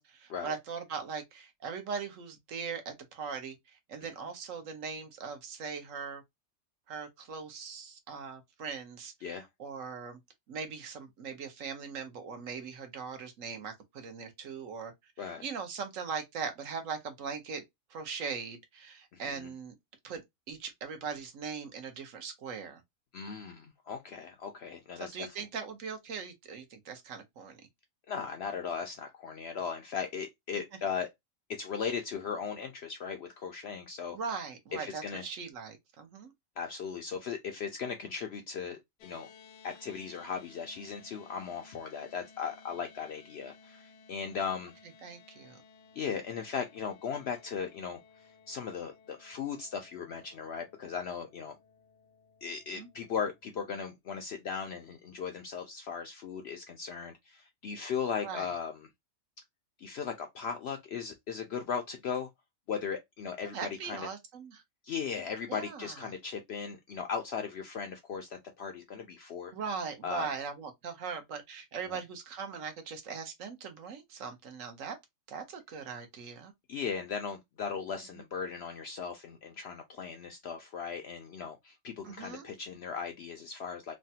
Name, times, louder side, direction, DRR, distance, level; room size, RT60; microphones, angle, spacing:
voice 1, 0.0-6.2 6.9-10.2 10.5-15.1 15.4-17.6 17.9-19.7 20.0-22.8 25.0-27.6 34.1-36.3 45.0-45.6 52.7-52.9 58.2-58.5 63.5-64.6 65.5-66.0 69.5-75.0 75.3-76.5 82.0-82.5, right 6 dB, 65° right, 1.1 m, -40 dB
voice 2, 19.1-19.5 23.1-25.3 28.1-31.1 31.5-34.2 34.7-35.2 36.6-39.3 39.6-44.7 46.0-48.0 48.5-51.6 52.4-58.7 59.8-62.3 62.7-63.6 63.8-64.1 64.8-69.5 70.0-70.3 71.9-72.0 76.7-83.9, left 6 dB, 65° left, 0.6 m, -37 dB
sound 1, 39.0-53.4, left 5 dB, 90° left, 1.1 m, -58 dB
3.2 x 2.1 x 2.7 m
omnidirectional pair, 1.5 m